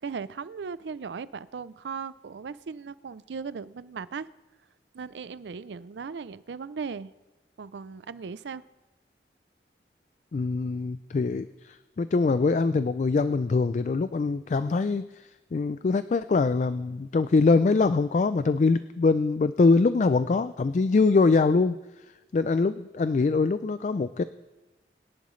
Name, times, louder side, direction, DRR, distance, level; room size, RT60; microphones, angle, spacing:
voice 1, 0.0-4.3 4.9-7.1 7.6-8.6, right 5 dB, 80° right, 17 dB, 0.4 m, -37 dB
voice 2, 10.3-21.8 22.3-24.2, left 4 dB, 45° left, 13 dB, 0.3 m, -23 dB
21.5 x 11.0 x 3.2 m, 1.1 s
head